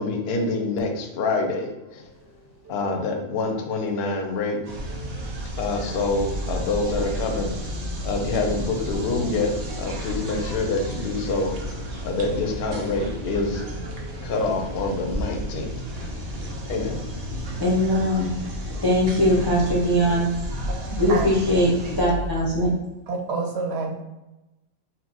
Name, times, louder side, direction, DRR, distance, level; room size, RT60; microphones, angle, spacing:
voice 1, 0.0-2.0 2.7-4.6 5.6-7.5 8.0-9.5 9.8-11.8 12.0-13.7 14.2-17.6, left 3 dB, 65° left, 3 dB, 0.7 m, -26 dB
sound 1, 1.3-20.3, left 1 dB, 25° right, 0.5 m, -45 dB
sound 2, 4.6-22.0, right 1 dB, 90° right, 0.3 m, -37 dB
sound 3, 4.7-22.7, equal, 90° left, 1.0 m, -34 dB
voice 2, 17.6-18.3 18.8-20.7 21.0-22.8, equal, 40° left, -6 dB, 0.3 m, -21 dB
voice 3, 20.6-21.3 23.1-24.0, right 4 dB, 65° right, 3 dB, 0.7 m, -28 dB
2.8 x 2.1 x 3.8 m, 1.0 s
omnidirectional pair, 1.4 m